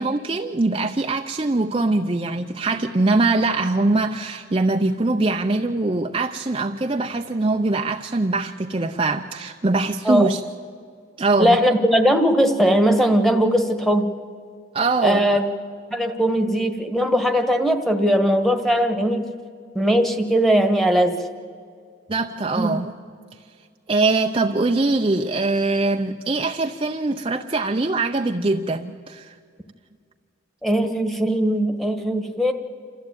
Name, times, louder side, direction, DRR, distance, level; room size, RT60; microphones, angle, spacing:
voice 1, 0.0-10.4 11.2-11.6 14.7-15.3 22.1-22.9 23.9-29.3, right 2 dB, 25° right, 4 dB, 0.6 m, -22 dB
voice 2, 11.4-14.1 15.0-15.4 15.9-19.3 19.7-21.2 22.6-22.7 30.6-32.5, equal, ahead, 4 dB, 1.4 m, -19 dB
27.5 x 14.0 x 9.0 m, 2.1 s
head